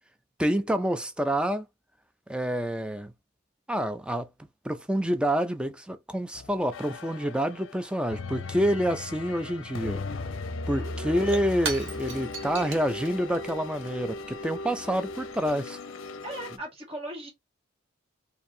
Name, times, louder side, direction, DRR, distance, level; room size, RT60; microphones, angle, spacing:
voice 1, 0.4-1.7 2.3-3.1 3.7-4.3 4.6-10.0 10.7-15.8, equal, 5° right, 0.4 m, -28 dB
sound 1, 6.3-16.6, left 3 dB, 70° left, 0.5 m, -37 dB
Shatter / Crushing, 10.3-10.4 10.6-15.5, right 3 dB, 65° right, 1.6 m, -40 dB
voice 2, 10.7-11.2 16.2-17.3, right 1 dB, 30° right, 1.7 m, -38 dB
4.6 x 2.6 x 2.7 m
head